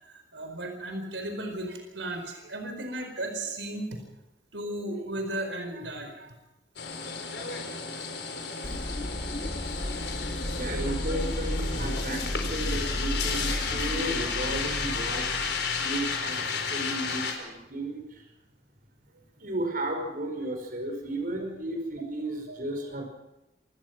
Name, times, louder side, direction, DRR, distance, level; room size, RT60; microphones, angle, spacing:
voice 1, 0.0-4.0 4.5-6.3 6.9-7.2 7.9-8.1 8.6-8.8 9.5-10.2 10.5-10.6 13.5-13.6 22.5-22.6, right 1 dB, 85° right, 5 dB, 4.8 m, -36 dB
sound 1, 6.8-17.3, left 5 dB, 70° left, 4.3 m, -32 dB
sound 2, 8.6-16.0, left 1 dB, 30° left, 1.1 m, -34 dB
voice 2, 10.6-18.3 19.4-23.0, right 1 dB, 50° right, 3 dB, 5.3 m, -34 dB
26.5 x 17.5 x 6.1 m, 0.98 s
head